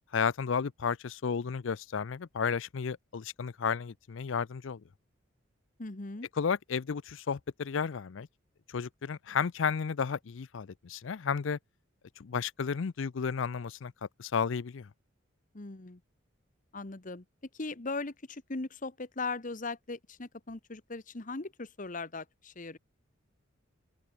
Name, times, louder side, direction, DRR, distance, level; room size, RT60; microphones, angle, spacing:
voice 1, 0.1-4.8 6.4-8.3 8.7-11.6 12.2-13.9 14.2-14.9, left 6 dB, 70° left, 0.5 m, -32 dB
voice 2, 5.8-6.3 15.5-16.0 16.7-17.2 17.5-22.8, left 3 dB, 40° left, 1.2 m, -39 dB
open air
head